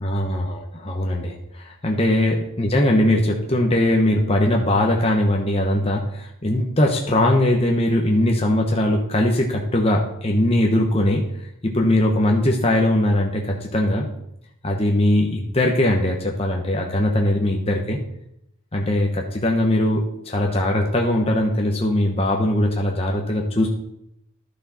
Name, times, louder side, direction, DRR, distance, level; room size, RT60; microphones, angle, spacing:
voice 1, 0.0-11.2 11.6-14.1 14.6-18.0 18.7-23.7, left 1 dB, 30° left, 0 dB, 1.0 m, -20 dB
11.5 x 6.6 x 4.3 m, 0.77 s
head